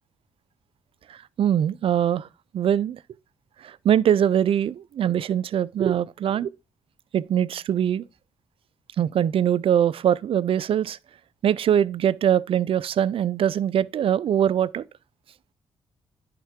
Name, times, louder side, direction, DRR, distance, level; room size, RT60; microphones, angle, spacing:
voice 1, 1.1-2.3 2.5-3.0 3.6-6.5 7.1-8.0 9.0-11.0 11.4-14.9, right 9 dB, 60° right, 0.4 m, -22 dB
10.0 x 3.7 x 3.5 m
supercardioid pair, 60°, 11 cm